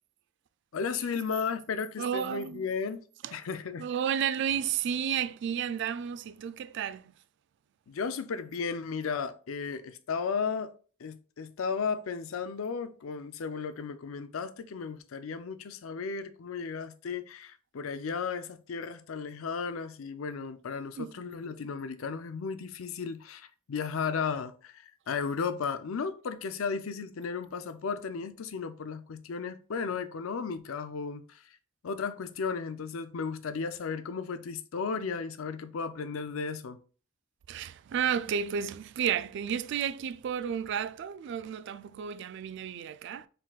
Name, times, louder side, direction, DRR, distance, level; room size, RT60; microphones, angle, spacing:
voice 1, 0.7-3.0 3.3-3.9 7.9-10.7 11.0-31.6 31.8-36.8, left 5 dB, 75° left, 0.5 m, -34 dB
voice 2, 2.0-2.7 3.2-3.4 3.8-7.1 21.0-21.1 37.5-43.3, right 8 dB, 60° right, 0.3 m, -32 dB
4.5 x 3.7 x 2.3 m
head